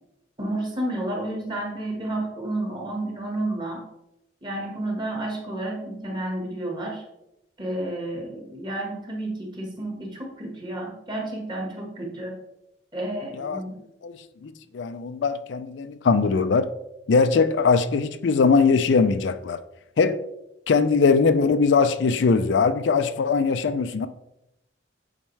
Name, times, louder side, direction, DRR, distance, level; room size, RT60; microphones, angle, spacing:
voice 1, 0.4-3.8 4.4-7.0 7.6-12.4 12.9-13.8, right 1 dB, 25° right, 1.4 m, -31 dB
voice 2, 14.4-16.7 17.1-19.6 20.0-20.2 20.7-24.1, left 4 dB, 75° left, 0.4 m, -21 dB
8.8 x 4.4 x 3.2 m
head